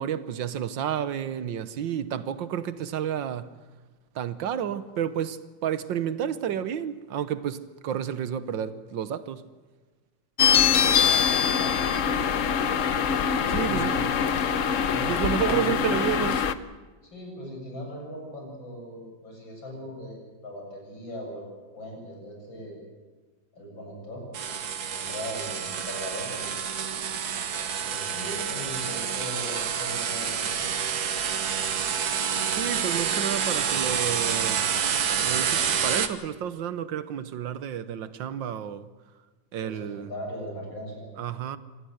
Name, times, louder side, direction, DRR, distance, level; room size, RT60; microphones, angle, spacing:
voice 1, 0.0-3.5 4.1-9.4 13.5-14.0 15.1-16.4 32.5-34.6 35.2-38.9 39.5-40.1 41.2-41.6, right 9 dB, 80° right, 1.7 m, -31 dB
sound 1, 10.4-16.5, left 7 dB, 55° left, 1.1 m, -23 dB
voice 2, 10.7-11.9 13.3-14.1 14.9-16.0 17.0-21.4 21.7-22.8 23.5-24.3 24.9-26.6 27.9-30.8 39.6-41.1, equal, 85° left, 8.3 m, -39 dB
sound 2, 24.3-36.1, right 7 dB, 60° right, 1.7 m, -28 dB
25.5 x 19.0 x 8.0 m
omnidirectional pair, 2.0 m